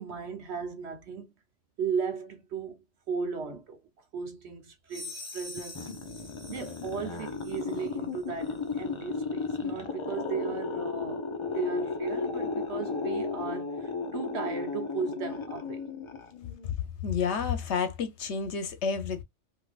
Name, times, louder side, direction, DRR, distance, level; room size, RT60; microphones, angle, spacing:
voice 1, 0.0-1.3 1.8-3.8 4.1-5.9 6.5-11.3 11.5-15.8, right 6 dB, 65° right, 1.1 m, -36 dB
sound 1, 4.9-7.9, left 2 dB, 15° left, 0.8 m, -45 dB
sound 2, 5.6-16.7, left 4 dB, 35° left, 0.5 m, -34 dB
voice 2, 17.0-19.2, left 6 dB, 70° left, 1.0 m, -30 dB
3.3 x 2.7 x 2.4 m
omnidirectional pair, 1.3 m